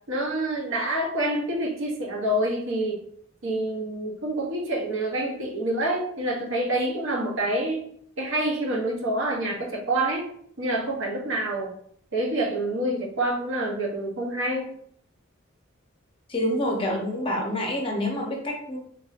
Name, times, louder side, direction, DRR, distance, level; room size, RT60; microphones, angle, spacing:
voice 1, 0.1-3.0 3.4-7.8 8.2-10.2 10.6-11.7 12.1-14.7, right 1 dB, 65° right, -1 dB, 0.8 m, -27 dB
voice 2, 16.3-18.8, left 1 dB, 25° left, 0 dB, 0.6 m, -27 dB
3.4 x 2.6 x 2.4 m, 0.64 s
head